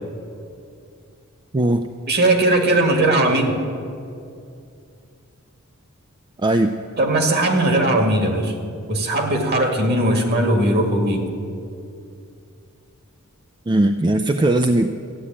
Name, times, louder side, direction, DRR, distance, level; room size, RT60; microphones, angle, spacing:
voice 1, 1.5-1.9 6.4-6.7 13.7-14.9, right 1 dB, 20° right, 7 dB, 0.4 m, -18 dB
voice 2, 2.1-3.5 7.0-8.5 8.9-11.2, right 1 dB, 50° right, 4 dB, 2.0 m, -18 dB
13.5 x 9.8 x 8.6 m, 2.5 s
head